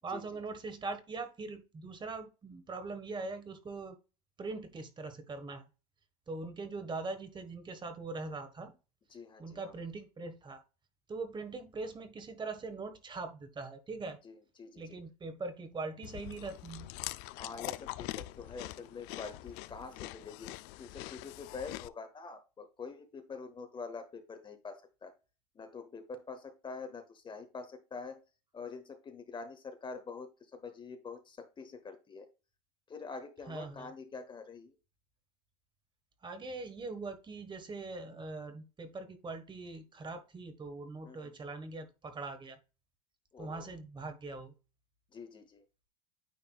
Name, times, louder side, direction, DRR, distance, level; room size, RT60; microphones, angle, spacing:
voice 1, 0.0-4.0 4.4-5.6 6.3-8.7 9.4-10.6 11.1-14.2 14.8-16.9 33.5-33.9 36.2-42.6 43.4-44.5, right 3 dB, 25° right, 8 dB, 1.5 m, -42 dB
voice 2, 9.1-9.7 14.2-15.0 17.3-20.5 20.8-25.1 25.5-28.2 28.5-32.3 32.9-34.8 41.0-41.3 43.3-43.7 45.1-45.6, left 4 dB, 25° left, 8 dB, 1.2 m, -46 dB
Chewing mastication, 16.0-21.9, left 18 dB, 60° left, 0.4 m, -43 dB
9.5 x 4.4 x 2.4 m, 0.30 s
hypercardioid pair, 90°, 19 cm